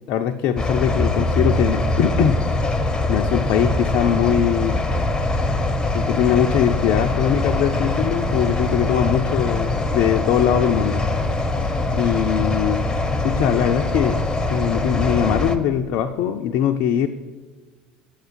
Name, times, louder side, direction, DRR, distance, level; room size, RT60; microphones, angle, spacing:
voice 1, 0.1-2.4 3.1-4.8 5.9-11.0 11.9-12.9 13.2-14.2 14.5-17.1, left 9 dB, 45° left, 6 dB, 0.4 m, -21 dB
sound 1, 0.6-15.6, left 2 dB, 15° left, 0.8 m, -22 dB
8.7 x 8.0 x 5.5 m, 1.4 s
figure-of-eight pair, 70°, 4 cm